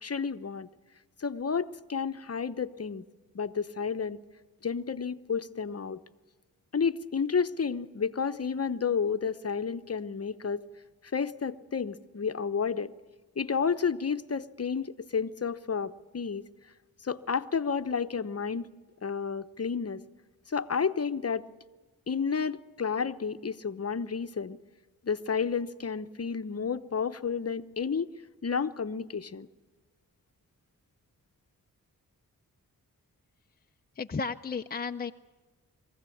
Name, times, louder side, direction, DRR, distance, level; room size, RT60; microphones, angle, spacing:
voice 1, 0.0-0.7 1.2-3.0 3.3-4.2 4.6-6.0 6.7-10.7 11.1-12.9 13.4-16.5 17.0-18.7 19.0-20.0 20.5-21.4 22.1-24.6 25.0-28.1 28.4-29.5, left 6 dB, 40° left, 12 dB, 1.0 m, -31 dB
voice 2, 33.9-35.1, left 5 dB, 25° left, 6 dB, 0.6 m, -33 dB
23.0 x 16.0 x 8.6 m, 1.3 s
cardioid pair, 45°, 36 cm